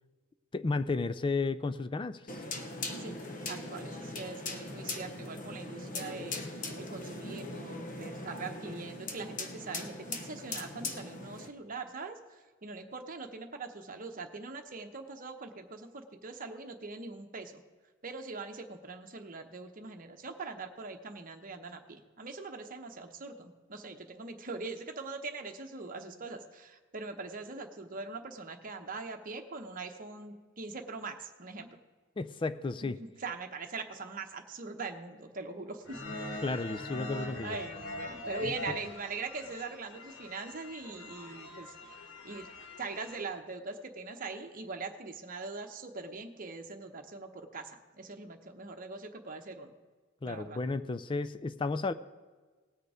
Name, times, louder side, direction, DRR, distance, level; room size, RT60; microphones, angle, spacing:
voice 1, 0.5-2.4 32.2-33.0 36.4-37.6 38.4-38.8 50.2-51.9, left 3 dB, 25° left, 12 dB, 0.4 m, -33 dB
sound 1, 2.3-11.5, left 2 dB, 40° left, 1.0 m, -40 dB
voice 2, 2.9-3.2 3.4-17.6 18.0-31.8 33.0-36.3 37.4-41.9 42.2-42.5 42.8-49.7 50.2-50.6, right 3 dB, 40° right, 4 dB, 1.0 m, -42 dB
sound 2, 35.8-43.2, left 2 dB, 60° left, 1.8 m, -42 dB
18.5 x 6.7 x 5.0 m, 1.4 s
head